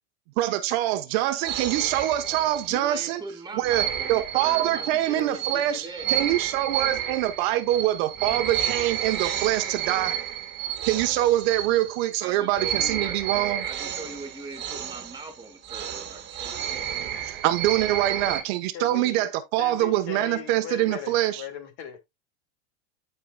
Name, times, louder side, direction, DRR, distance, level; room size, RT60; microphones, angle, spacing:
voice 1, 0.4-3.2 3.6-5.8 6.1-10.1 10.8-13.6 17.3-21.4, right 14 dB, 55° right, 1.1 m, -24 dB
sound 1, 1.4-3.0 3.6-12.2 12.5-18.4, right 10 dB, 30° right, 1.8 m, -31 dB
voice 2, 2.6-6.1 12.2-13.2 13.6-16.9, right 2 dB, 10° right, 2.3 m, -40 dB
voice 3, 18.7-19.2 19.6-22.0, left 8 dB, 50° left, 2.2 m, -38 dB
15.0 x 5.0 x 2.3 m
supercardioid pair, 140°, 37 cm